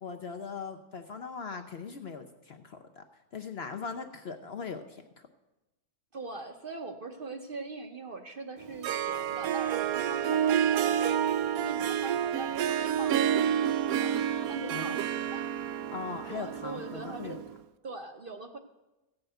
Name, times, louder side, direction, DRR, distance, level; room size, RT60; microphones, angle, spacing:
voice 1, 0.0-3.0 3.3-5.0 14.7-14.9 15.9-17.4, left 5 dB, 55° left, 6 dB, 0.8 m, -40 dB
voice 2, 6.1-11.2 11.5-13.4 13.8-15.5 16.3-17.4 17.8-18.6, right 3 dB, 45° right, 5 dB, 0.9 m, -42 dB
Harp, 8.6-17.6, right 9 dB, 75° right, 1.0 m, -29 dB
15.5 x 5.6 x 7.9 m, 1.0 s
omnidirectional pair, 1.6 m